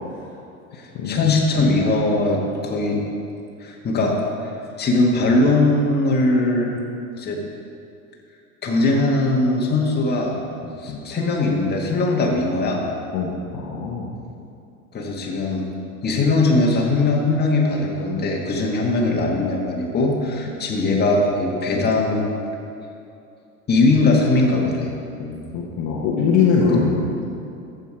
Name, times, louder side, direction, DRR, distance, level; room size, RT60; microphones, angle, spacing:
voice 1, 0.7-3.0 3.6-4.2 4.4-4.5 4.8-6.7 7.2-7.4 8.6-10.4 10.8-12.9 14.9-15.6 16.0-22.3 23.7-24.9 26.7-26.8, left 2 dB, 20° left, -1 dB, 1.8 m, -20 dB
voice 2, 13.1-14.1 25.2-27.3, left 5 dB, 40° left, -4 dB, 1.4 m, -22 dB
14.5 x 5.5 x 4.9 m, 2.6 s
figure-of-eight pair, 80°, 43 cm